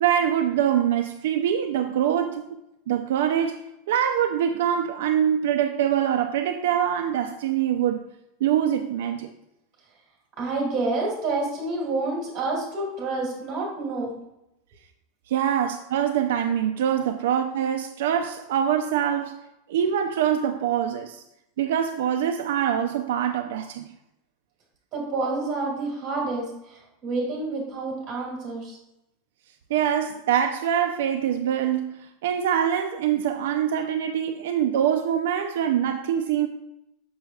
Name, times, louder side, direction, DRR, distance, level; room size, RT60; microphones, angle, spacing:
voice 1, 0.0-2.5 2.9-8.1 8.4-9.3 15.3-19.4 19.7-21.2 21.6-23.9 29.7-36.5, right 9 dB, 80° right, 0.4 m, -24 dB
voice 2, 10.4-14.1 24.9-28.8, right 3 dB, 30° right, 2.2 m, -28 dB
6.5 x 6.2 x 2.3 m
supercardioid pair, 175°, 0 cm